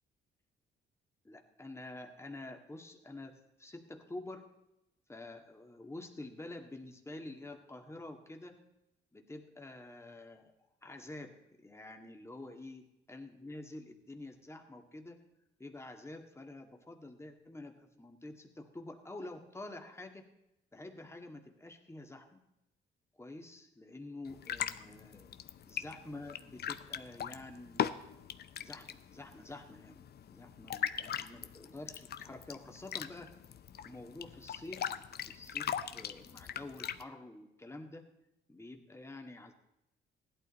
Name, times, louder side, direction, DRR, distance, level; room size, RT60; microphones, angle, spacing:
voice 1, 1.2-4.5 5.1-8.6 9.1-10.5 10.8-15.2 15.6-20.3 20.7-22.4 23.2-25.4 25.7-27.9 28.6-30.1 30.3-33.3 33.8-34.9 35.3-38.1 38.5-39.5, left 2 dB, 15° left, 3 dB, 1.8 m, -48 dB
sound 1, 24.3-37.0, left 9 dB, 55° left, 0.7 m, -40 dB
16.0 x 11.5 x 4.2 m, 0.88 s
cardioid pair, 90°, 20 cm